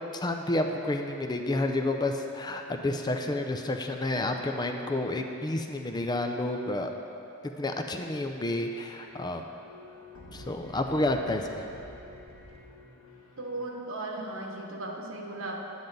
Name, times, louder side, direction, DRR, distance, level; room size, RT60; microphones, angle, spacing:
voice 1, 0.1-6.9 7.6-9.4 10.3-11.6, left 2 dB, 20° left, 4 dB, 0.4 m, -30 dB
sound 1, 8.3-13.7, left 1 dB, 90° left, 1.5 m, -49 dB
voice 2, 13.4-15.6, right 2 dB, 70° right, 0 dB, 1.2 m, -36 dB
9.5 x 8.9 x 4.0 m, 2.8 s
head